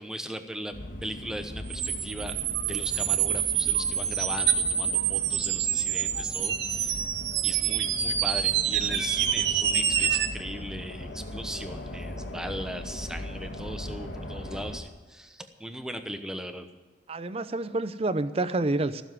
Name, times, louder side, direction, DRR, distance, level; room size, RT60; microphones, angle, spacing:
voice 1, 0.0-2.4 2.7-7.1 7.4-16.7, equal, 5° right, 7 dB, 1.0 m, -38 dB
sound 1, 0.7-14.8, left 1 dB, 90° left, 1.8 m, -39 dB
sound 2, 1.7-10.3, right 9 dB, 70° right, 1.0 m, -27 dB
voice 2, 17.1-19.0, right 2 dB, 35° right, 12 dB, 0.6 m, -28 dB
15.5 x 7.2 x 9.4 m, 1.3 s
head